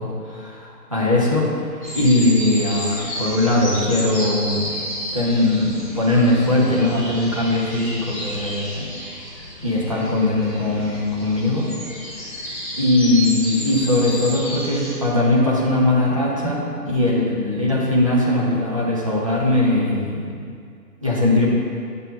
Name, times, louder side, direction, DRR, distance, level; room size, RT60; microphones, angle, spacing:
voice 1, 0.0-1.5 1.9-4.7 5.1-8.9 9.6-11.7 12.8-20.4 21.0-21.5, left 2 dB, 20° right, -6 dB, 0.7 m, -20 dB
sound 1, 1.8-14.9, equal, 5° left, 1.0 m, -32 dB
7.9 x 4.6 x 4.7 m, 2.3 s
figure-of-eight pair, 155°, 50 cm